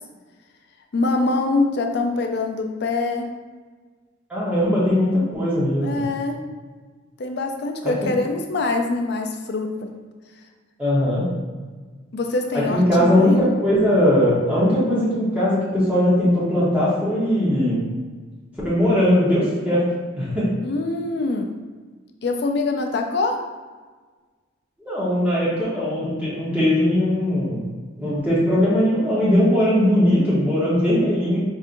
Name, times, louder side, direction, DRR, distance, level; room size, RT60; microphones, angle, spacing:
voice 1, 0.9-3.3 5.8-6.4 7.2-9.9 12.1-13.4 20.6-21.5 22.2-23.4, left 3 dB, 55° left, 4 dB, 0.4 m, -24 dB
voice 2, 4.3-6.0 8.0-8.1 10.8-11.2 12.7-17.8 18.6-19.8 20.2-20.5 24.8-27.6 28.0-31.4, left 1 dB, 5° right, -9 dB, 0.9 m, -19 dB
4.9 x 2.6 x 2.5 m, 1.4 s
head